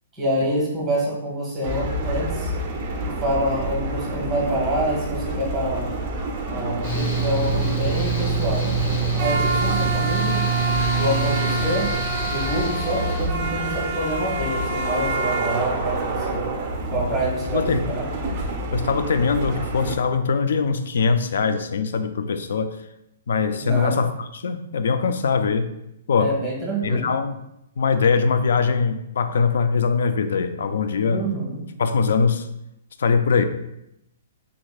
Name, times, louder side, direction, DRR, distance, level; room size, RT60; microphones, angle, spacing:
voice 1, 0.1-2.5 3.0-6.0 6.5-10.5 11.0-11.9 12.3-16.6 16.9-18.1 23.6-24.0 26.2-27.1 31.0-31.6, right 1 dB, ahead, -4 dB, 0.8 m, -26 dB
sound 1, 1.6-19.9, right 2 dB, 30° right, 0.4 m, -28 dB
Mechanical fan, 6.8-13.3, right 4 dB, 40° left, 1.0 m, -25 dB
voice 2, 17.5-17.9 18.7-22.8 23.3-25.7 26.1-26.3 26.8-27.4 27.8-31.2 31.8-32.5 33.0-33.5, left 5 dB, 70° left, 10 dB, 0.3 m, -22 dB
3.5 x 3.3 x 2.3 m, 0.83 s
hypercardioid pair, 170°, 0 cm